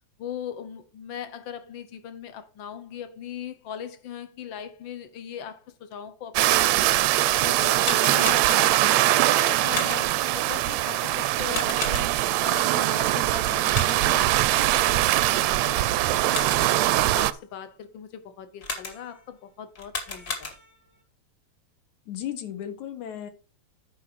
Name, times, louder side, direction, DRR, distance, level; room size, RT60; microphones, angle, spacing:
voice 1, 0.2-6.9 7.3-12.1 12.4-16.7 17.1-20.5, left 8 dB, 60° left, 1.3 m, -39 dB
sound 1, 6.4-17.3, right 15 dB, 80° right, 1.7 m, -22 dB
sound 2, 7.7-8.9 9.7-10.3 11.5-12.4 13.7-14.3 16.1-16.8 18.6-19.2 19.7-20.9, left 4 dB, 40° left, 2.7 m, -35 dB
voice 2, 22.1-23.3, left 10 dB, 80° left, 2.7 m, -35 dB
10.0 x 5.5 x 4.9 m
omnidirectional pair, 3.3 m